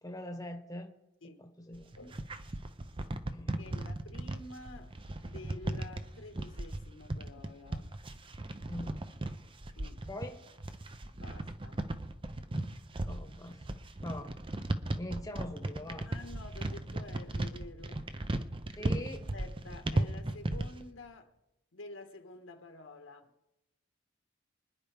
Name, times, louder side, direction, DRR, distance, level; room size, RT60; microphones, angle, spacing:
voice 1, 0.0-0.9 1.2-1.9 3.3-3.6 8.7-9.0 10.1-10.4 13.0-13.6 14.0-14.3 15.0-16.1 18.8-19.3, left 1 dB, 15° left, 1.1 m, -42 dB
sound 1, 1.7-20.8, right 1 dB, 25° right, 0.6 m, -36 dB
voice 2, 3.6-7.9 9.8-10.0 11.2-11.9 16.1-18.1 18.8-18.9 19.3-21.3 21.7-23.3, left 2 dB, 85° left, 1.6 m, -49 dB
25.0 x 10.0 x 3.5 m
head